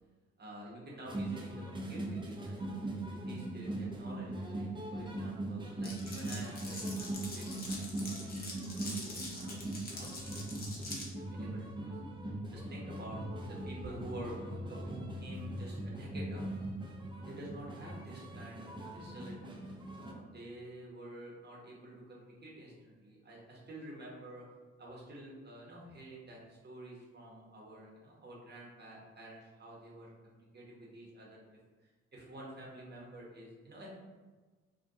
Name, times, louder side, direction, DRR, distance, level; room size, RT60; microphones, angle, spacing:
voice 1, 0.4-2.7 3.1-9.5 9.9-12.0 12.5-16.7 17.3-18.7 18.9-19.6 19.9-24.4 24.8-31.4 32.1-33.9, right 1 dB, 35° right, -4 dB, 0.9 m, -49 dB
sound 1, 1.1-20.1, right 1 dB, 15° right, 0.5 m, -40 dB
Glass, 5.8-11.1, left 2 dB, 30° left, 0.8 m, -44 dB
2.3 x 2.1 x 2.6 m, 1.3 s
hypercardioid pair, 45°, 31 cm